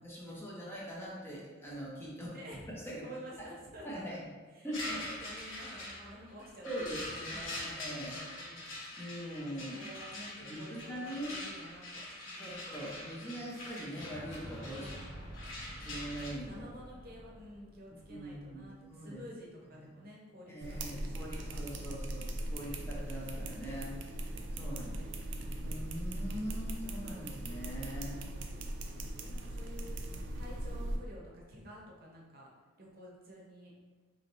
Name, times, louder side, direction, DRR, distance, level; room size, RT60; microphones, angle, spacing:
voice 1, 0.0-2.3 2.7-3.1 3.4-3.5 3.8-4.2 4.6-5.0 6.6-8.2 9.0-9.9 10.4-11.3 12.3-14.9 15.8-16.6 18.1-19.2 19.7-19.9 20.5-23.9 24.3-28.2, equal, 10° left, -5 dB, 0.6 m, -42 dB
voice 2, 2.3-2.7 3.0-4.2 4.5-8.8 9.7-12.7 14.8-15.2 16.3-21.6 24.7-25.2 28.1-28.8 29.2-30.0 30.3-32.5 32.8-33.7, equal, 50° right, -3 dB, 0.8 m, -51 dB
sound 1, 4.7-16.3, left 1 dB, 80° left, 1.2 m, -44 dB
Fire / Explosion, 13.5-19.4, equal, 15° right, 0.9 m, -49 dB
sound 2, 20.6-31.0, right 1 dB, 65° right, 0.4 m, -39 dB
3.9 x 3.0 x 3.0 m, 1.4 s
head